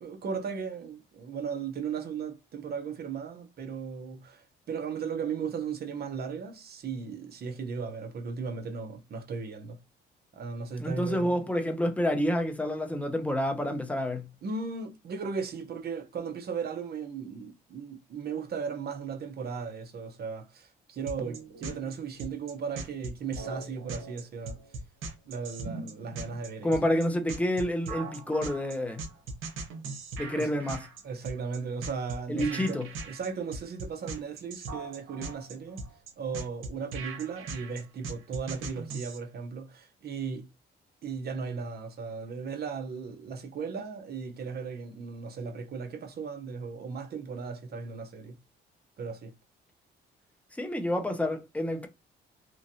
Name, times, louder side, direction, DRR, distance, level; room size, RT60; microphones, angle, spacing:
voice 1, 0.0-9.8 10.3-11.4 14.4-24.6 25.3-26.7 30.4-30.5 31.0-35.8 36.2-40.5 41.0-48.4 49.0-49.3, right 5 dB, 55° right, 0.7 m, -36 dB
voice 2, 10.8-14.3 26.6-29.0 30.2-30.8 32.3-32.9 50.6-51.9, equal, 5° left, 0.7 m, -28 dB
sound 1, 21.1-39.2, right 3 dB, 85° right, 0.8 m, -39 dB
3.0 x 2.5 x 2.6 m
cardioid pair, 90°, 20 cm